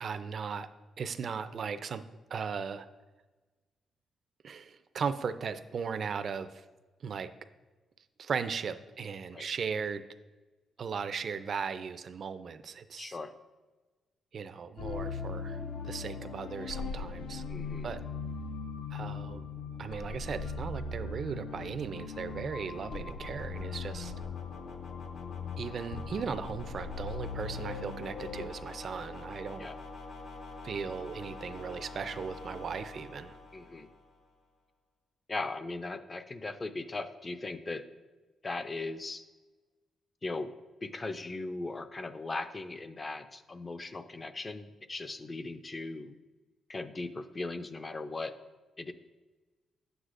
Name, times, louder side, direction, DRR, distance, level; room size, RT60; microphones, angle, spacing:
voice 1, 0.0-0.7 1.0-2.0 2.3-2.9 4.4-6.6 7.0-7.3 8.2-10.0 10.8-13.2 14.3-17.4 17.8-18.0 18.9-19.5 19.8-24.1 25.6-29.7 30.6-33.4, right 6 dB, 55° right, 11 dB, 0.4 m, -37 dB
voice 2, 13.0-13.3 17.5-17.9 29.6-29.8 33.5-33.9 35.3-37.8 38.4-39.2 40.2-40.5 40.8-46.2 46.7-48.3 48.8-48.9, left 3 dB, 30° left, 9 dB, 0.5 m, -38 dB
sound 1, 14.8-28.5, left 4 dB, 85° left, 0.7 m, -39 dB
sound 2, 18.3-34.3, left 3 dB, 65° left, 1.1 m, -47 dB
9.5 x 8.0 x 2.5 m, 1.2 s
cardioid pair, 85°, 0 cm